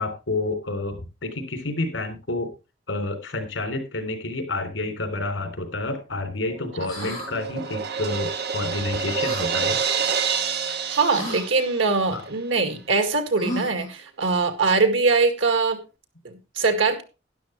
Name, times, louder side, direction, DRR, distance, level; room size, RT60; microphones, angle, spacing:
voice 1, 0.0-2.5 2.9-9.8 12.1-12.2, left 2 dB, 80° left, 6 dB, 3.5 m, -29 dB
Crash cymbal, 6.5-12.2, right 6 dB, 55° right, 1.0 m, -28 dB
sound 1, 6.8-7.3 9.2-9.5 11.1-11.4 13.4-13.9, equal, 20° left, 7.9 m, -32 dB
voice 2, 6.8-7.2 10.9-15.8 16.2-17.0, right 4 dB, 90° right, 7 dB, 2.0 m, -22 dB
12.0 x 11.0 x 3.2 m, 0.29 s
head